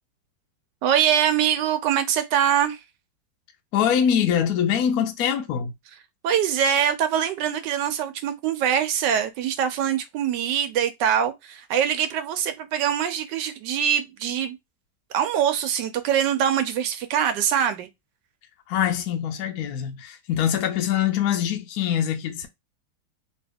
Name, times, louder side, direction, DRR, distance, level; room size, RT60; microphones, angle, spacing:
voice 1, 0.8-2.8 6.2-14.6 15.1-17.9, right 9 dB, 75° right, 1.0 m, -23 dB
voice 2, 3.7-5.7 18.7-22.5, left 9 dB, 80° left, 0.8 m, -23 dB
3.0 x 2.7 x 3.4 m
omnidirectional pair, 2.3 m